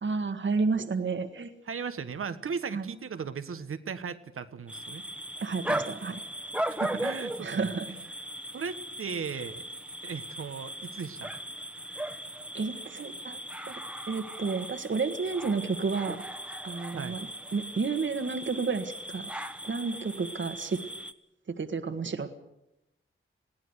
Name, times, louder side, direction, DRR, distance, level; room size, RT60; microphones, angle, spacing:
voice 1, 0.0-1.5 2.7-2.9 5.4-6.2 7.4-7.9 11.9-12.0 12.5-13.4 13.7-13.8 14.1-16.2 16.6-17.3 17.5-19.3 19.6-20.8 21.6-22.3, right 4 dB, 60° right, 8 dB, 1.8 m, -31 dB
voice 2, 1.6-5.1 6.7-8.0 8.5-9.6 10.0-11.3 16.9-17.2, right 6 dB, 85° right, 10 dB, 1.4 m, -37 dB
sound 1, 4.7-21.1, right 1 dB, 5° right, 1.4 m, -38 dB
21.5 x 16.5 x 8.2 m, 0.87 s
cardioid pair, 60°, 21 cm